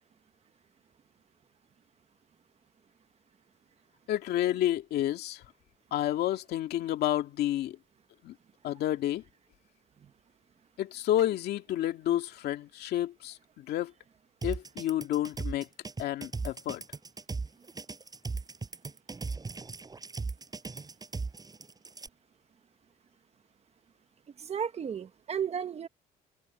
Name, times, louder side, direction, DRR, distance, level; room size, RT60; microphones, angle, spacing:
voice 1, 4.1-5.4 5.9-7.8 8.2-8.3 8.6-9.2 10.8-13.9 14.4-15.7 16.0-16.8, left 12 dB, 70° left, 2.2 m, -30 dB
sound 1, 14.4-22.1, right 4 dB, 20° right, 5.7 m, -37 dB
voice 2, 24.4-25.9, right 7 dB, 40° right, 1.3 m, -33 dB
cardioid pair, 110°, 17 cm